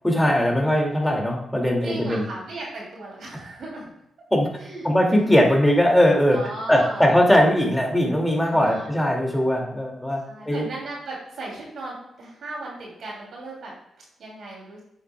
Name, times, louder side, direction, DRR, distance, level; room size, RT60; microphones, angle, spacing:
voice 1, 0.0-2.3 4.3-4.5 4.8-6.4 6.7-10.6, equal, 10° left, 0 dB, 2.2 m, -20 dB
voice 2, 1.8-3.9 4.6-4.8 5.1-5.3 6.3-7.2 8.4-8.9 10.3-13.7 14.2-14.8, right 2 dB, 70° right, -4 dB, 2.7 m, -36 dB
8.7 x 7.7 x 2.3 m, 0.79 s
cardioid pair, 70°, 0 cm